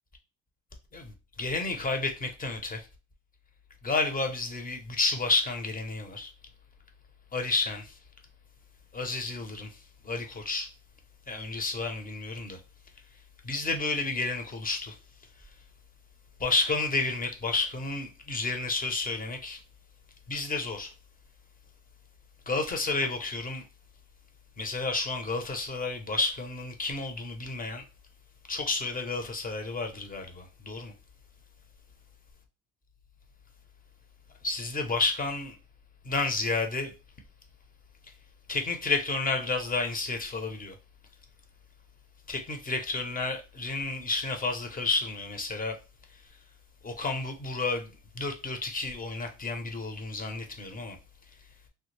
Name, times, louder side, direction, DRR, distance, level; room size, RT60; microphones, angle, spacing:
voice 1, 1.4-2.9 3.8-6.3 7.3-8.0 8.9-9.7 10.0-10.7 11.3-12.6 13.4-14.9 16.4-19.6 20.3-20.9 22.5-23.6 24.6-27.8 28.5-30.9 34.4-35.6 36.0-36.9 38.5-40.7 42.3-45.8 46.8-51.0, left 3 dB, 30° left, 0.9 m, -31 dB
3.3 x 2.3 x 3.2 m
cardioid pair, 90°, 30 cm